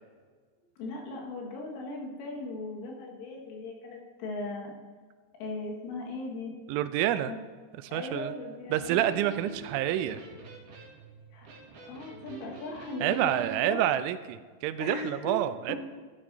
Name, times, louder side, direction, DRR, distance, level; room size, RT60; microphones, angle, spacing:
voice 1, 0.8-4.7 5.4-6.6 7.3-7.4 7.9-9.0 11.3-13.9 14.8-15.3 15.7-15.8, left 2 dB, 85° left, -2 dB, 4.2 m, -38 dB
voice 2, 6.7-7.3 7.8-8.3 8.7-10.2 13.0-15.8, right 12 dB, 85° right, 12 dB, 2.9 m, -28 dB
Electric guitar, 8.6-13.7, right 4 dB, 60° right, 3.4 m, -45 dB
12.0 x 11.5 x 2.7 m, 1.5 s
omnidirectional pair, 5.5 m